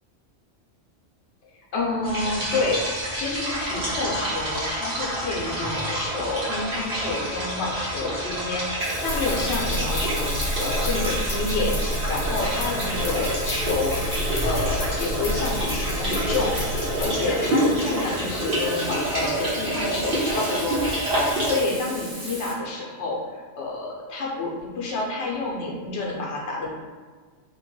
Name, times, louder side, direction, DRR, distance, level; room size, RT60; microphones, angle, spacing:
voice 1, 1.7-2.8 3.1-14.1 14.4-26.7, left 3 dB, 85° left, -3 dB, 1.0 m, -29 dB
sound 1, 2.0-21.5, right 1 dB, 65° right, 1.2 m, -28 dB
Frying (food), 8.8-22.5, right 1 dB, 35° right, 0.3 m, -39 dB
sound 2, 9.0-17.1, left 1 dB, 60° left, 1.0 m, -30 dB
3.0 x 2.2 x 3.1 m, 1.5 s
omnidirectional pair, 1.1 m